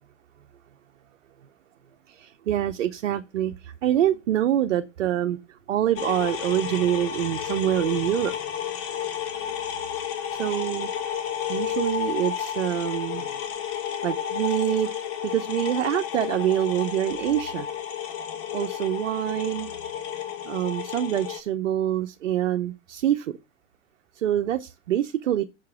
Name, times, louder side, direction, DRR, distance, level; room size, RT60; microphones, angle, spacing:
voice 1, 2.1-5.4 5.7-8.3 10.4-10.9 11.5-13.4 14.0-14.9 15.2-17.7 18.5-19.7 20.5-23.3 24.2-25.4, right 11 dB, 70° right, 0.8 m, -25 dB
sound 1, 6.0-21.4, left 9 dB, 35° left, 1.6 m, -32 dB
6.7 x 4.7 x 6.8 m
figure-of-eight pair, 100°, 37 cm